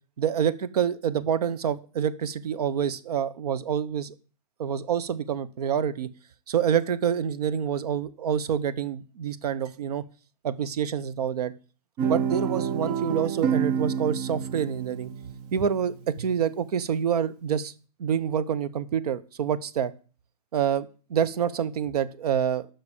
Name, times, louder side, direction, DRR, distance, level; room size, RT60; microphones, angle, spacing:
voice 1, 0.2-4.1 4.6-6.1 6.5-10.0 10.4-11.5 12.0-15.1 15.5-17.7 18.0-19.9 20.5-22.7, right 8 dB, 75° right, 15 dB, 0.9 m, -27 dB
Guitar, 12.0-16.3, right 8 dB, 20° right, 0.5 m, -29 dB
8.4 x 5.9 x 7.2 m, 0.37 s
hypercardioid pair, 160°, 20 cm